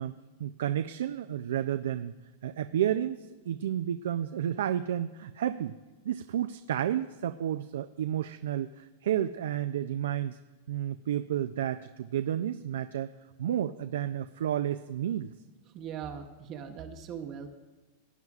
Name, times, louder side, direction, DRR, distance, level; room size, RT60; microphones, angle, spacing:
voice 1, 0.0-2.1 2.4-5.7 6.0-10.4 10.7-13.1 13.4-15.3, right 10 dB, 85° right, 9 dB, 0.3 m, -31 dB
voice 2, 15.7-17.5, right 8 dB, 30° right, 5 dB, 0.8 m, -40 dB
18.0 x 9.4 x 2.4 m, 1.2 s
supercardioid pair, 155°, 0 cm